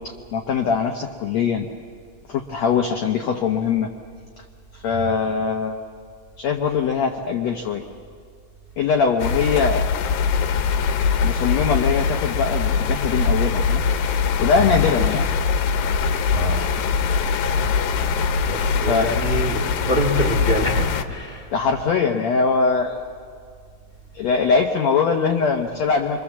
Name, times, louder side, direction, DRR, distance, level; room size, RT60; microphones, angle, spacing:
voice 1, 0.0-1.7 2.3-3.9 4.7-5.8 6.4-7.8 8.8-9.8 11.2-13.8 14.4-15.3 18.8-19.1 21.5-23.0 24.1-26.2, left 5 dB, 85° left, 3 dB, 1.5 m, -22 dB
sound 1, 9.2-21.0, left 5 dB, 70° left, 2.4 m, -22 dB
voice 2, 16.3-16.6 18.5-21.5, right 1 dB, 25° right, 1 dB, 1.1 m, -26 dB
25.5 x 25.0 x 7.3 m, 2.2 s
omnidirectional pair, 4.6 m